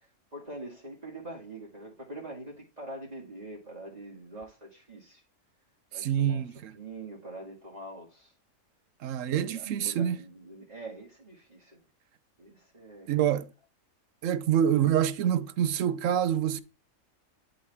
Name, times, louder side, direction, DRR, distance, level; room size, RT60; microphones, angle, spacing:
voice 1, 0.3-5.2 5.9-6.4 6.7-8.3 9.3-11.8 12.4-13.1, right 2 dB, 30° right, 2.1 m, -44 dB
voice 2, 5.9-6.8 9.0-10.2 13.1-13.5 14.2-16.6, right 10 dB, 65° right, 1.0 m, -26 dB
11.0 x 4.2 x 3.4 m
omnidirectional pair, 1.5 m